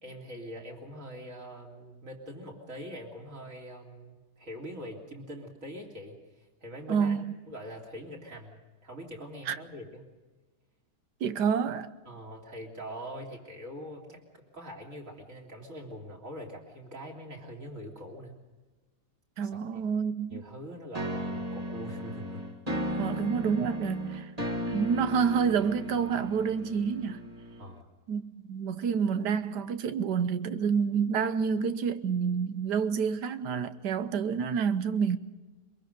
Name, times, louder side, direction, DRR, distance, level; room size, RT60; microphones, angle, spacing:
voice 1, 0.0-6.2 6.6-7.1 7.5-10.1 12.1-18.4 19.7-19.8 20.3-22.4 27.6-27.9, equal, 50° right, 3.7 m, -43 dB
voice 2, 6.9-7.2 9.5-9.6 11.2-11.9 19.4-20.4 23.0-24.3 24.7-27.2 28.1-28.2 28.5-35.2, right 6 dB, 80° right, 1.5 m, -28 dB
sound 1, 20.9-27.8, equal, 25° right, 1.9 m, -35 dB
23.0 x 22.5 x 5.3 m
omnidirectional pair, 1.8 m